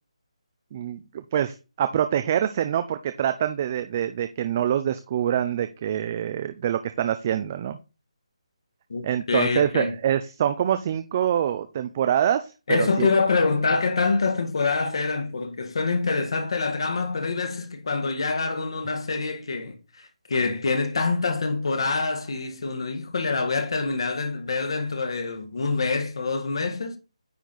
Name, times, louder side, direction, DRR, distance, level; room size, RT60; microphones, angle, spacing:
voice 1, 0.7-7.8 9.0-12.5 12.8-13.1, right 10 dB, 20° right, 0.4 m, -25 dB
voice 2, 8.9-9.9 12.7-27.0, left 4 dB, 50° left, 1.4 m, -25 dB
9.4 x 4.3 x 3.9 m
hypercardioid pair, 175°, 3 cm